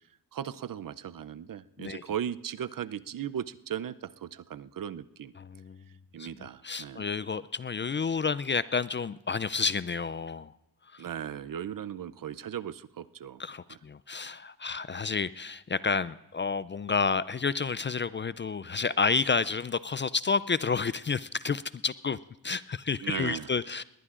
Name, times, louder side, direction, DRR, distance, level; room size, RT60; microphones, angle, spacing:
voice 1, 0.3-5.3 6.1-7.1 11.0-13.4 13.7-13.8 23.0-23.5, right 9 dB, 55° right, 15 dB, 0.6 m, -37 dB
voice 2, 5.4-5.8 6.2-6.3 6.6-10.5 10.9-11.1 13.4-22.2 22.4-23.8, left 5 dB, 30° left, 16 dB, 0.4 m, -30 dB
20.0 x 18.5 x 2.5 m, 0.92 s
cardioid pair, 45°, 40 cm